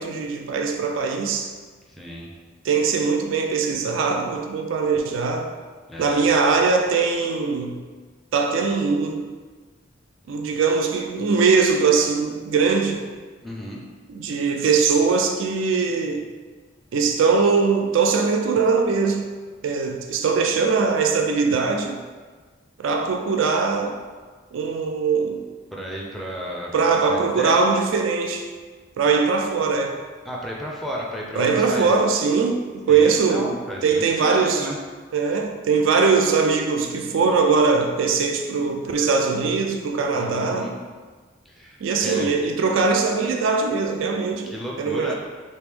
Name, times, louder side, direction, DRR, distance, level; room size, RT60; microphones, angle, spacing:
voice 1, 0.0-1.5 2.6-5.5 6.0-7.8 8.3-9.3 10.3-13.1 14.1-16.3 16.9-19.3 19.6-22.0 22.8-24.0 24.5-25.5 26.7-28.5 29.0-30.0 31.4-33.5 33.8-34.7 35.1-40.7 41.8-45.2, right 5 dB, 75° right, 0.3 m, -21 dB
voice 2, 1.9-2.3 5.9-6.3 13.4-13.8 25.7-27.6 30.3-32.0 32.9-34.8 40.1-40.8 41.5-42.3 44.4-45.2, equal, ahead, 0.4 m, -33 dB
3.3 x 2.8 x 3.4 m
head